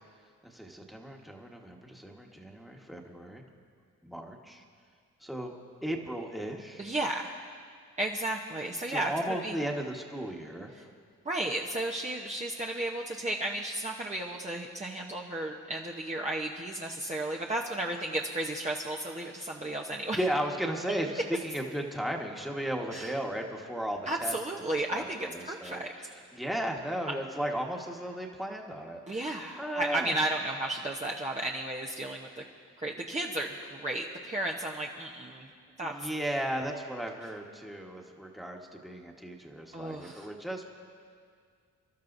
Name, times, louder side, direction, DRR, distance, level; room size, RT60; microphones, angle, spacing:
voice 1, 0.4-3.4 4.0-4.6 5.2-5.5 5.8-6.9 8.9-10.7 20.1-24.4 24.9-26.0 26.3-29.3 29.6-30.2 35.8-40.7, right 1 dB, ahead, 0 dB, 1.5 m, -35 dB
voice 2, 6.8-7.4 8.0-9.1 9.4-9.6 10.7-10.8 11.2-20.2 22.9-23.1 24.1-25.9 29.1-32.4 32.8-35.5 35.8-36.1 39.7-40.3, right 1 dB, 20° right, -2 dB, 0.9 m, -33 dB
29.5 x 12.5 x 2.7 m, 2.1 s
cardioid pair, 85°, 33 cm